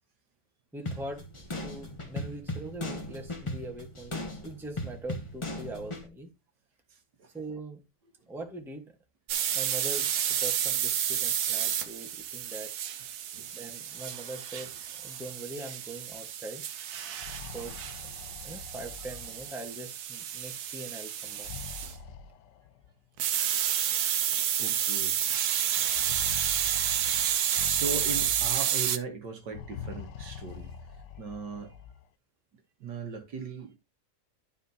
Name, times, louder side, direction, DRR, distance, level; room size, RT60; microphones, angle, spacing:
voice 1, 0.7-1.2 1.6-6.3 7.3-7.8 8.3-9.0 9.5-12.7 13.5-14.7 15.0-16.7 17.5-18.1 18.4-21.5 27.1-27.2, right 2 dB, ahead, 1.0 m, -42 dB
sound 1, 0.9-6.1, left 1 dB, 20° left, 0.9 m, -37 dB
sound 2, 9.3-21.9 23.2-29.0, right 10 dB, 70° right, 1.2 m, -30 dB
sound 3, 17.0-19.9 21.2-22.9 23.9-24.0 24.4-24.5 25.8-28.9 29.4-32.0, left 8 dB, 85° left, 1.3 m, -44 dB
voice 2, 23.7-24.0 24.6-25.3 27.6-30.8 31.2-31.7 32.8-33.8, right 5 dB, 85° right, 2.1 m, -38 dB
11.5 x 5.0 x 2.8 m
omnidirectional pair, 1.8 m